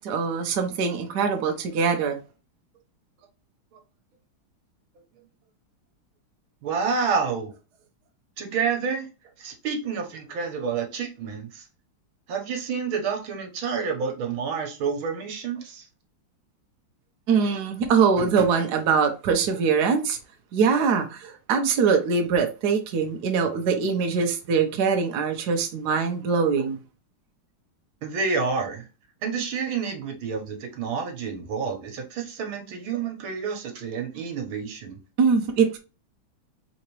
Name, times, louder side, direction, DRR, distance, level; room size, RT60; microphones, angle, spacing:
voice 1, 0.0-2.2 17.3-20.2 20.5-26.8 35.2-35.8, right 5 dB, 60° right, 1.2 m, -23 dB
voice 2, 6.6-7.5 8.4-9.1 9.4-11.7 12.3-15.9 28.0-28.9 29.2-35.0, right 5 dB, 80° right, 1.9 m, -29 dB
4.2 x 3.8 x 3.1 m
omnidirectional pair, 2.3 m